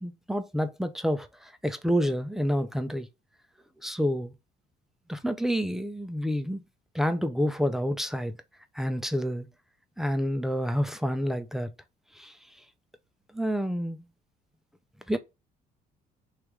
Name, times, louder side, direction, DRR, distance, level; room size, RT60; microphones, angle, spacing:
voice 1, 0.0-3.1 3.8-4.3 5.1-6.6 6.9-8.3 8.7-9.5 10.0-11.7 12.2-12.3 13.3-14.1 15.1-15.2, equal, ahead, 0.5 m, -28 dB
3.2 x 2.9 x 3.3 m
cardioid pair, 110°, 17 cm